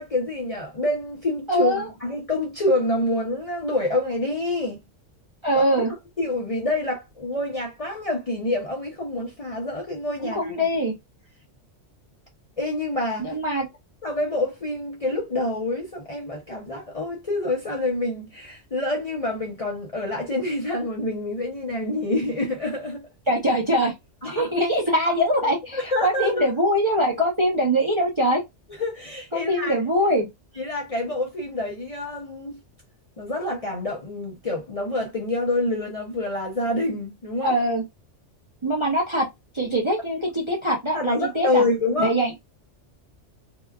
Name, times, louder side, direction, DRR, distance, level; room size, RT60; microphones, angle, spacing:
voice 1, 0.0-4.8 5.5-10.6 12.6-13.4 14.0-23.0 24.2-24.5 25.4-26.5 28.8-29.8 30.6-32.6 33.2-37.5 40.9-42.1, left 2 dB, 40° left, 0.6 m, -27 dB
voice 2, 1.5-1.9 5.4-5.9 10.2-10.9 13.2-13.7 23.3-23.9 24.2-28.4 29.3-30.3 37.4-37.8 38.6-39.3 39.5-41.6 42.0-42.3, equal, 30° right, 0.6 m, -22 dB
2.8 x 2.3 x 2.2 m
omnidirectional pair, 1.2 m